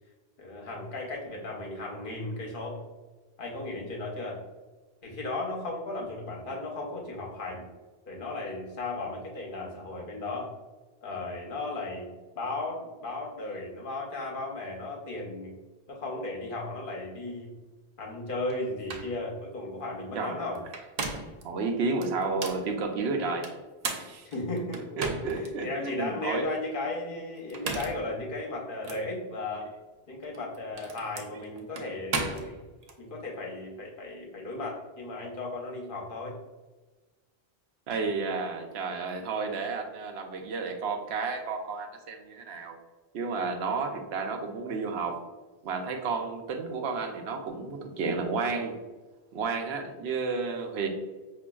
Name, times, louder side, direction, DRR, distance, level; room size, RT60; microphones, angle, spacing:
voice 1, 0.4-2.8 3.4-4.4 5.0-7.7 8.1-10.5 11.0-15.6 15.9-17.5 18.0-20.6 24.2-25.0 25.3-29.7 30.1-32.6 33.0-36.4, left 2 dB, 60° left, -1 dB, 0.9 m, -35 dB
sound 1, 18.5-18.6 18.9-19.1 20.6-21.4 22.0-22.6 23.4-25.5 26.0-26.1 27.4-28.1 28.8-29.0 30.2-33.0, right 3 dB, 50° right, 0.5 m, -35 dB
voice 2, 20.1-20.6 21.4-23.5 23.9-24.3 25.0-26.5 37.9-42.8 43.1-45.2 45.6-48.8 49.3-50.9, right 4 dB, 90° right, 3 dB, 0.9 m, -31 dB
5.0 x 2.5 x 2.2 m, 1.2 s
omnidirectional pair, 1.0 m